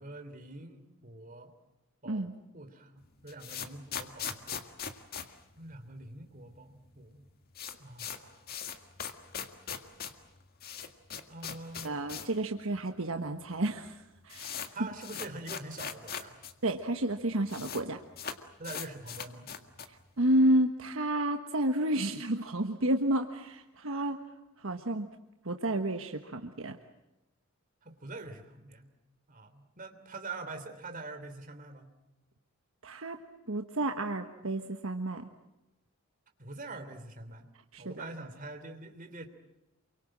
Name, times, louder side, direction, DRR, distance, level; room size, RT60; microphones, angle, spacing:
voice 1, 0.0-1.5 2.0-4.6 5.6-7.3 7.8-8.6 11.3-12.1 14.7-16.4 18.6-19.5 27.8-28.9 29.3-31.9 36.4-37.4 37.8-39.3, right 2 dB, 40° right, 7 dB, 3.2 m, -45 dB
sound 1, 3.0-6.3 6.5-6.6 6.8-6.9 7.2-12.4 12.7-12.8 13.5-13.6 13.8-16.5 16.8-16.9 17.1-17.8 18.1-20.0, left 7 dB, 45° left, 1.8 m, -40 dB
voice 2, 11.8-14.7 16.6-18.0 19.9-24.2 24.6-25.1 25.4-26.8 32.8-33.2 33.5-35.3 37.7-38.0, right 1 dB, 70° right, 5 dB, 1.4 m, -30 dB
28.5 x 24.0 x 7.5 m, 0.96 s
head